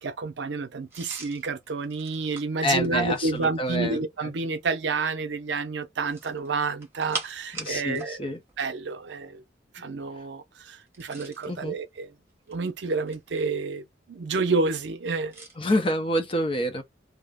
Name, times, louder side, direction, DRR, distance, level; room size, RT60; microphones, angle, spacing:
voice 1, 0.0-8.3 8.6-9.4 9.7-12.1 12.5-15.4, right 4 dB, 80° right, 0.5 m, -29 dB
sound 1, 0.9-3.6 6.0-8.1 8.4-8.6 10.8-11.5 12.3-13.4 15.3-15.6, right 3 dB, 15° right, 0.9 m, -41 dB
voice 2, 2.6-4.3 7.5-8.4 11.5-11.7 15.6-16.8, left 1 dB, 30° left, 0.6 m, -27 dB
2.4 x 2.0 x 3.4 m
head